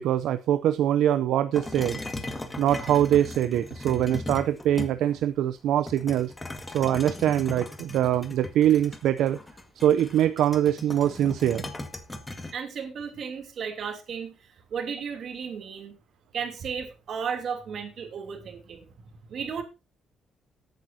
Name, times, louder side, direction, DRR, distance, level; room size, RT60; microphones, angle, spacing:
voice 1, 0.0-6.3 6.7-9.4 9.8-11.7, right 11 dB, 85° right, 11 dB, 0.5 m, -23 dB
sound 1, 1.5-5.2 5.9-12.5, left 2 dB, 20° left, 1.8 m, -38 dB
voice 2, 12.5-16.0 16.3-18.9 19.3-19.6, right 6 dB, 60° right, 6 dB, 2.9 m, -34 dB
18.0 x 9.1 x 2.8 m, 0.27 s
cardioid pair, 90°, 0 cm